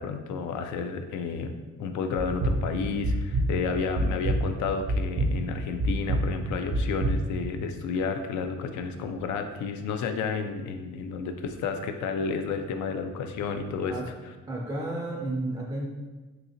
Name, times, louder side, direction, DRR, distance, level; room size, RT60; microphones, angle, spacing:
voice 1, 0.0-1.5 1.8-14.0, left 5 dB, 70° left, 7 dB, 0.4 m, -31 dB
sound 1, 2.2-7.5, right 1 dB, 70° right, 0.6 m, -28 dB
voice 2, 14.5-15.9, right 2 dB, 15° right, -2 dB, 0.4 m, -32 dB
3.9 x 2.7 x 2.8 m, 1.2 s
cardioid pair, 90°, 30 cm